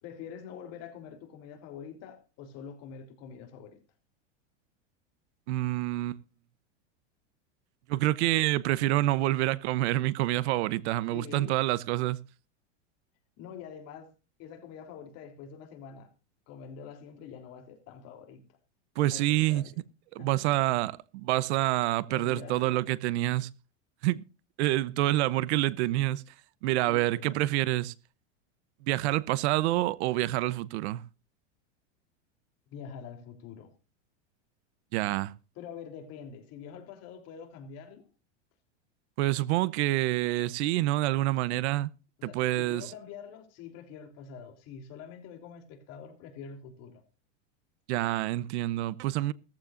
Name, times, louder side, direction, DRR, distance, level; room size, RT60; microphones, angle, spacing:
voice 1, 0.0-3.8 11.1-11.6 13.4-14.1 14.4-16.1 16.5-18.4 19.1-19.8 20.2-20.6 22.1-22.8 26.9-27.4 32.7-33.7 35.5-38.1 42.2-47.0, left 7 dB, 45° left, 3.4 m, -45 dB
voice 2, 5.5-6.2 7.9-12.2 19.0-19.6 20.1-23.5 24.0-24.2 24.6-26.2 26.6-27.9 28.8-31.0 34.9-35.3 39.2-41.9 42.2-42.9 47.9-49.3, right 16 dB, 65° right, 0.9 m, -27 dB
17.5 x 14.5 x 2.5 m
supercardioid pair, 145°, 36 cm